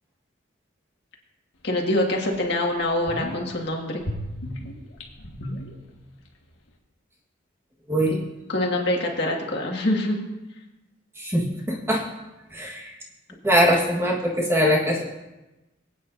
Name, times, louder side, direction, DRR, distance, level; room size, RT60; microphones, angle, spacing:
voice 1, 1.6-4.1 8.1-8.2 8.5-10.2, left 1 dB, 55° left, 0 dB, 1.8 m, -25 dB
sound 1, 1.8-1.9 2.3-2.4 2.8-3.6 4.0-6.3 6.5-6.6, equal, 85° left, 1.6 m, -34 dB
voice 2, 11.2-12.0 12.5-12.9 13.4-15.1, equal, 10° right, -2 dB, 1.5 m, -22 dB
22.5 x 9.1 x 2.7 m, 1.0 s
head